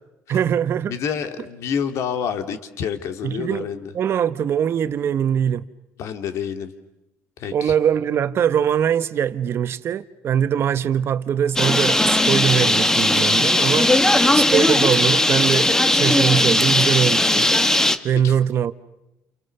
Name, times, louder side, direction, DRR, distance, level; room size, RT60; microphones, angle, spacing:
voice 1, 0.3-0.9 3.2-5.6 7.5-17.5 18.0-18.7, right 8 dB, 50° right, 1.2 m, -22 dB
voice 2, 0.9-3.9 6.0-6.7 7.4-7.7 18.2-18.3, left 7 dB, 65° left, 2.9 m, -28 dB
Bird, 11.6-18.0, left 1 dB, 10° left, 1.6 m, -18 dB
30.0 x 29.0 x 6.9 m
cardioid pair, 110°, 5 cm